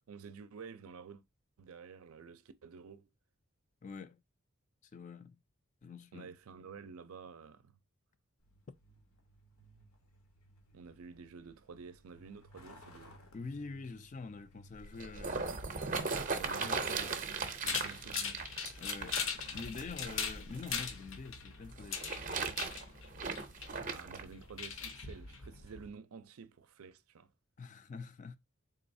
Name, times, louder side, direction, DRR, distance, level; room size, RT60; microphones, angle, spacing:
voice 1, 0.1-1.2 1.6-3.1 6.1-7.7 10.7-13.2 16.1-18.4 23.9-27.3, right 5 dB, 85° right, 0.5 m, -51 dB
voice 2, 3.8-4.2 4.9-5.4 5.8-6.3 13.3-15.5 16.6-16.8 18.8-19.2 19.5-22.0 27.6-28.4, left 4 dB, 35° left, 0.3 m, -45 dB
Truck, 8.4-16.0, equal, 90° left, 1.1 m, -60 dB
sound 1, 14.8-20.9 21.7-24.2 24.9-25.0, right 4 dB, 40° right, 0.5 m, -38 dB
sound 2, 17.7-25.9, left 6 dB, 65° left, 0.7 m, -40 dB
3.8 x 3.1 x 2.6 m
head